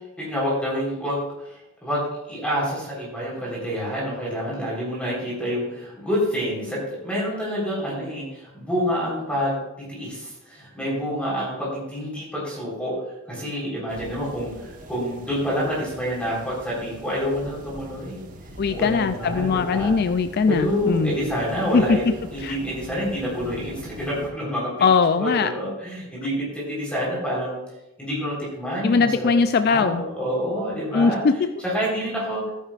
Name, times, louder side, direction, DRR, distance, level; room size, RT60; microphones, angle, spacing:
voice 1, 0.2-2.0 2.3-12.9 13.3-18.3 18.7-19.9 20.5-22.0 22.3-24.7 25.2-27.5 28.0-29.3 29.7-31.2 31.6-32.4, equal, 5° left, -6 dB, 4.1 m, -27 dB
sound 1, 13.9-24.3, equal, 35° right, 1.2 m, -41 dB
voice 2, 18.6-21.2 21.7-22.0 22.4-22.6 24.8-25.5 28.8-30.0 30.9-31.5, left 5 dB, 45° left, 10 dB, 0.3 m, -20 dB
14.5 x 9.7 x 2.5 m, 0.94 s
head